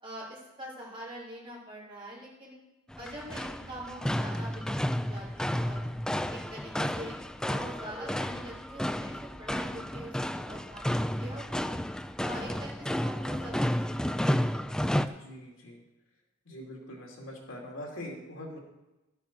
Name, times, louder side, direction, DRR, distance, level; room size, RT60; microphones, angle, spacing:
voice 1, 0.0-2.6 3.0-5.9 6.3-11.7 12.2-14.6 14.9-15.1, equal, 25° right, -5 dB, 3.3 m, -44 dB
sound 1, 2.9-15.1, equal, 5° left, 0.3 m, -32 dB
voice 2, 15.1-15.8 16.5-18.6, left 1 dB, 85° left, 0 dB, 2.5 m, -43 dB
12.5 x 7.2 x 5.9 m, 1.0 s
head